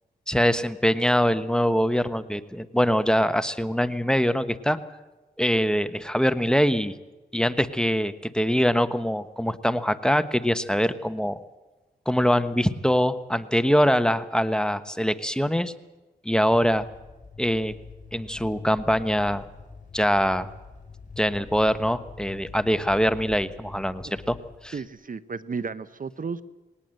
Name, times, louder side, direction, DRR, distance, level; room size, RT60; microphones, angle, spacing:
voice 1, 0.3-4.8 5.4-6.9 7.3-11.4 12.1-15.7 16.2-16.9 17.4-17.7 18.1-19.4 19.9-20.5 21.2-24.4 24.6-24.7, equal, 5° left, 11 dB, 1.2 m, -23 dB
sound 1, 16.5-24.9, left 4 dB, 45° left, 4.7 m, -45 dB
voice 2, 24.7-26.4, right 5 dB, 50° right, 14 dB, 0.9 m, -33 dB
20.0 x 18.5 x 7.9 m, 1.1 s
cardioid pair, 55°, 18 cm